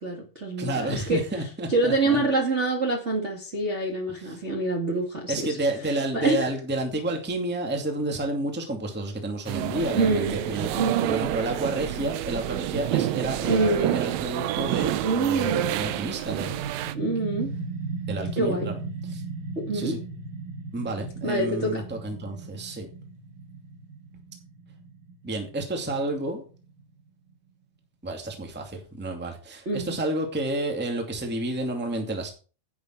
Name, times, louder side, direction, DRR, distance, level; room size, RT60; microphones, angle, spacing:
voice 1, 0.0-1.2 1.7-5.6 6.1-6.5 10.0-10.4 10.7-11.2 13.4-14.0 15.0-15.8 16.9-17.5 18.4-18.7 19.5-19.9 21.2-21.8 29.6-30.0, right 2 dB, 30° right, -1 dB, 1.5 m, -26 dB
voice 2, 0.6-2.2 4.2-4.3 5.3-16.9 18.1-18.8 19.1-19.2 19.7-20.0 20.7-22.9 25.2-26.4 28.0-32.3, right 2 dB, 5° right, 2 dB, 1.5 m, -30 dB
sound 1, 9.5-16.9, right 13 dB, 90° right, 1.5 m, -28 dB
sound 2, 16.1-27.0, right 4 dB, 70° right, 3.3 m, -37 dB
10.5 x 9.4 x 4.6 m, 0.37 s
omnidirectional pair, 3.9 m